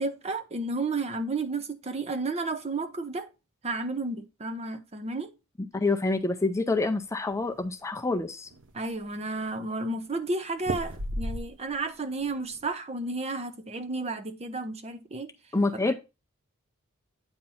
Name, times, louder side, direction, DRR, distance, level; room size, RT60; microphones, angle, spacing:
voice 1, 0.0-3.3 3.6-5.3 8.7-15.3 15.9-16.0, right 3 dB, 30° right, 0.7 m, -32 dB
voice 2, 5.7-8.5 15.5-15.9, left 3 dB, 15° left, 0.5 m, -27 dB
sound 1, 6.7-7.6 8.1-8.2 8.5-9.1 10.6-11.9 12.2-12.7, right 1 dB, 60° right, 0.9 m, -35 dB
8.8 x 2.9 x 5.5 m
head